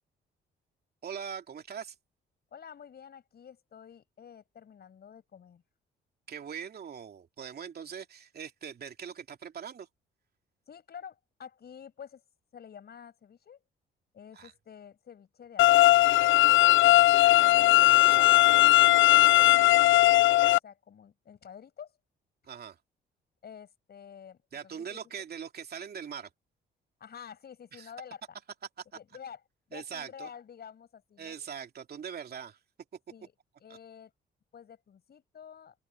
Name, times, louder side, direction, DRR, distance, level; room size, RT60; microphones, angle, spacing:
voice 1, 1.0-1.9 6.3-9.9 14.3-14.5 17.1-18.3 22.4-22.8 24.5-26.3 27.7-27.9 28.8-28.9 29.7-30.3 31.2-32.6, right 7 dB, 50° right, 2.8 m, -42 dB
voice 2, 2.5-5.6 10.7-12.2 12.5-13.6 14.1-15.9 17.3-20.2 20.5-21.9 23.4-25.0 27.0-28.2 28.9-29.4 29.7-31.4 33.1-33.3 33.6-34.1 34.5-35.7, left 8 dB, 55° left, 6.7 m, -49 dB
sound 1, 15.6-20.6, left 18 dB, 80° left, 0.4 m, -19 dB
open air
cardioid pair, 90°, 20 cm